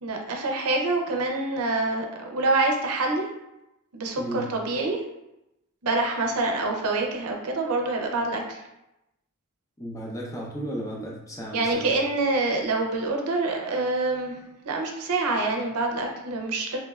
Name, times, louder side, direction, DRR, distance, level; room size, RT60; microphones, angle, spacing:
voice 1, 0.0-3.3 3.9-5.0 5.8-8.6 11.5-16.8, right 2 dB, 80° right, 2 dB, 0.6 m, -26 dB
voice 2, 4.2-4.5 9.8-11.9, right 1 dB, 15° left, -3 dB, 0.6 m, -34 dB
3.2 x 3.1 x 2.3 m, 0.90 s
head